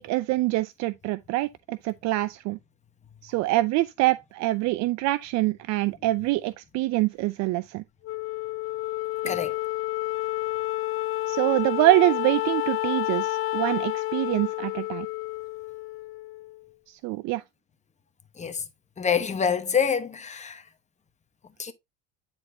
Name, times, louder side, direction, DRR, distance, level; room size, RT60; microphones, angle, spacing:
voice 1, 0.0-2.6 3.2-7.8 9.2-9.3 11.3-15.1 16.9-17.4, right 18 dB, 60° right, 0.5 m, -25 dB
Wind instrument woodwind instrument, 8.0-16.6, left 16 dB, 45° left, 0.4 m, -30 dB
voice 2, 19.0-20.6 21.6-21.7, left 7 dB, 20° left, 1.0 m, -26 dB
9.7 x 4.3 x 2.7 m
supercardioid pair, 115°, 32 cm